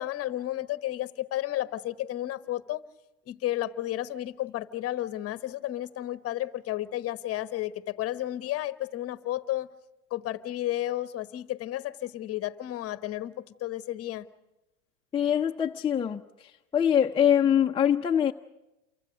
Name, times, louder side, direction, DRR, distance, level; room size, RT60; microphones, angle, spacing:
voice 1, 0.0-2.8 3.3-9.7 10.1-14.3, left 14 dB, 30° left, 1.2 m, -32 dB
voice 2, 15.1-16.2 16.7-18.3, left 9 dB, 10° left, 0.7 m, -23 dB
29.0 x 24.0 x 5.2 m
hypercardioid pair, 105°, 44 cm